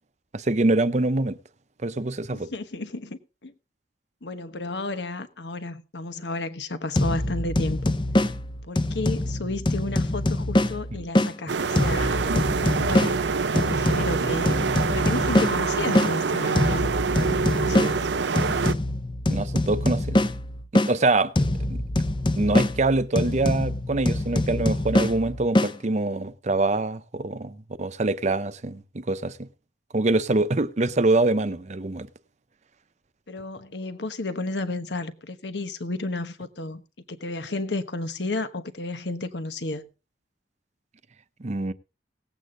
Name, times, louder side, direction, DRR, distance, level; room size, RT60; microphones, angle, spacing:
voice 1, 0.3-1.4 1.8-2.5 13.9-14.0 19.3-20.2 20.7-21.8 22.4-29.5 29.9-32.1 41.4-41.7, right 2 dB, 40° right, 0.7 m, -25 dB
voice 2, 2.3-3.5 4.2-7.9 8.7-14.6 14.9-16.9 17.2-18.0 33.3-36.8 37.1-39.9, left 2 dB, 80° left, 1.2 m, -32 dB
sound 1, 6.9-11.3 11.7-16.1 16.5-20.9 21.3-25.7, left 1 dB, 25° left, 0.7 m, -25 dB
sound 2, 11.5-18.7, right 5 dB, 90° right, 0.6 m, -25 dB
18.0 x 8.3 x 3.8 m
head